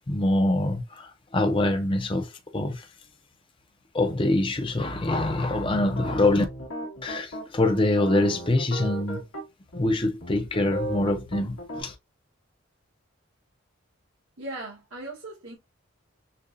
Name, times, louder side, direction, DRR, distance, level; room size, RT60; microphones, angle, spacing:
voice 1, 0.0-2.9 3.9-6.4 7.0-9.2 9.7-11.9, left 2 dB, 25° left, 0.6 m, -25 dB
sound 1, 5.9-9.4 9.7-9.9 10.2-11.8, right 1 dB, 75° left, 2.5 m, -35 dB
voice 2, 14.4-15.6, right 2 dB, 70° right, 1.5 m, -38 dB
6.5 x 2.3 x 2.6 m
head